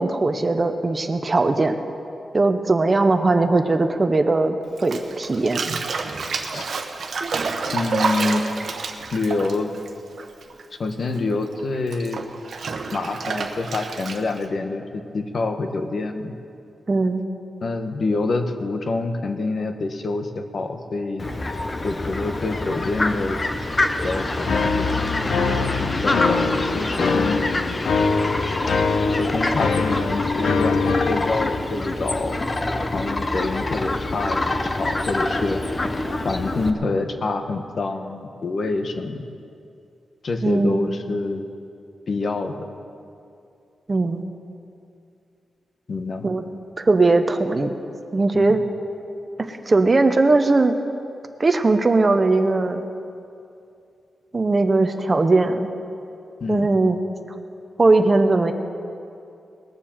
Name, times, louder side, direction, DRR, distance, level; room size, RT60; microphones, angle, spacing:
voice 1, 0.0-1.8 2.3-4.6 4.8-5.6 16.9-17.2 40.4-40.9 43.9-44.2 46.2-46.4 46.8-47.7 48.1-48.6 49.4-50.8 51.4-52.9 54.3-55.7 56.5-57.0 57.8-58.5, right 3 dB, 30° right, 7 dB, 0.7 m, -19 dB
Bathtub (filling or washing), 4.8-10.6 10.9-14.4, right 4 dB, 60° right, 1.1 m, -29 dB
voice 2, 7.7-8.4 9.1-9.7 10.8-12.2 12.9-16.3 17.6-21.3 21.8-23.4 24.0-24.9 25.8-27.4 29.2-32.4 32.9-35.6 36.2-39.2 40.2-41.4 42.1-42.6 45.9-46.3 48.3-48.6 56.4-56.7, left 3 dB, 50° left, 7 dB, 1.0 m, -26 dB
Fowl, 21.2-36.7, left 2 dB, 25° left, 0.8 m, -26 dB
sound 1, 24.5-31.3, left 4 dB, 80° left, 0.8 m, -23 dB
19.5 x 7.3 x 7.3 m, 2.6 s
wide cardioid pair, 145°, 0 cm